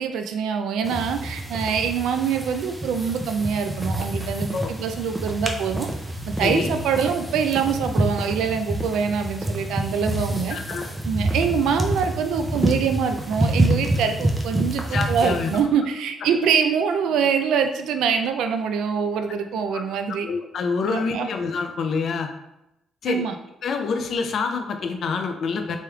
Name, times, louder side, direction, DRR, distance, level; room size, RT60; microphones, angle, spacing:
voice 1, 0.0-5.9 6.3-10.6 11.0-20.3 20.9-21.3 23.1-23.4, right 6 dB, 85° right, 6 dB, 0.3 m, -24 dB
sound 1, 0.8-15.6, right 1 dB, 10° right, 0.5 m, -27 dB
voice 2, 6.4-6.7 10.5-10.9 14.9-15.5 19.7-19.8 20.2-22.3 23.0-23.2 23.6-25.8, left 4 dB, 60° left, 5 dB, 0.4 m, -26 dB
3.2 x 3.0 x 2.3 m, 0.87 s
cardioid pair, 90°, 0 cm